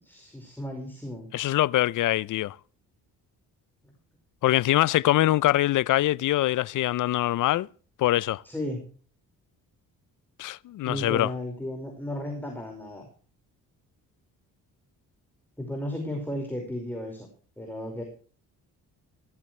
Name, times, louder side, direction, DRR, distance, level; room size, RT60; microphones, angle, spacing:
voice 1, 0.0-1.3 8.4-8.8 10.8-13.1 15.6-17.3 17.6-18.0, left 1 dB, 5° left, 5.2 m, -34 dB
voice 2, 1.3-2.6 4.4-7.7 8.0-8.4 10.4-11.3, left 15 dB, 60° left, 0.5 m, -23 dB
17.5 x 15.0 x 3.3 m
cardioid pair, 80°, 35 cm